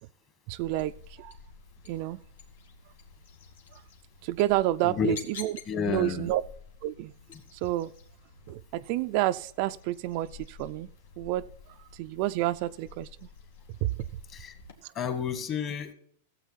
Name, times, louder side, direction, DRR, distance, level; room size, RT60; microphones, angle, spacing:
voice 1, 0.5-0.9 1.2-1.3 1.9-2.2 4.2-5.6 5.9-6.4 6.8-7.1 7.6-7.9 8.5-10.9 11.2-11.4 11.9-13.1 14.8-14.9, right 16 dB, 45° right, 11 dB, 0.4 m, -29 dB
sound 1, 0.6-14.7, left 5 dB, 80° left, 2.1 m, -50 dB
voice 2, 4.8-5.1 5.7-6.3 14.3-14.5 14.9-15.9, left 7 dB, 30° left, 9 dB, 1.6 m, -30 dB
15.5 x 8.0 x 4.1 m, 0.63 s
supercardioid pair, 145°, 0 cm